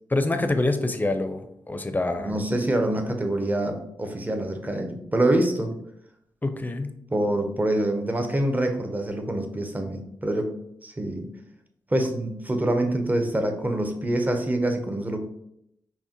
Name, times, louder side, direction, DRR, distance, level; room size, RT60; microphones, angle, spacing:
voice 1, 0.1-1.4 1.7-2.4 6.4-6.9, left 2 dB, 20° left, 8 dB, 0.5 m, -25 dB
voice 2, 2.2-5.7 7.1-10.5 10.8-11.3 11.9-15.2, right 1 dB, 20° right, 5 dB, 0.7 m, -25 dB
5.4 x 2.1 x 2.9 m, 0.78 s
cardioid pair, 50°, 9 cm